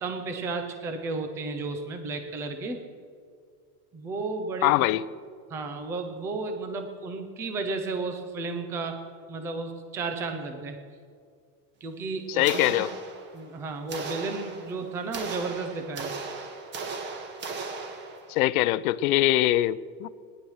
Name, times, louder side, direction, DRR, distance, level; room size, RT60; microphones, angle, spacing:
voice 1, 0.0-2.8 3.9-4.8 5.5-9.0 9.3-10.8 11.8-12.7 13.3-16.1, right 3 dB, 5° right, 6 dB, 0.3 m, -33 dB
voice 2, 4.6-5.1 12.3-12.9 18.3-20.1, left 15 dB, 65° left, 17 dB, 0.7 m, -23 dB
sound 1, 12.4-13.5 13.9-18.4, right 4 dB, 25° right, 1.4 m, -37 dB
19.0 x 10.5 x 6.3 m, 2.1 s
supercardioid pair, 160°, 47 cm